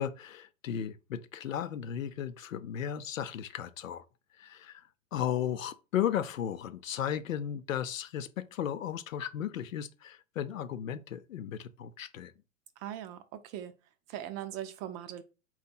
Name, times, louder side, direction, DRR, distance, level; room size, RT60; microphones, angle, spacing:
voice 1, 0.0-4.0 4.4-4.8 5.1-12.3, left 9 dB, 85° left, 0.6 m, -35 dB
voice 2, 12.8-13.7 14.1-15.2, right 11 dB, 40° right, 0.6 m, -40 dB
4.1 x 2.4 x 4.2 m
hypercardioid pair, 100°, 39 cm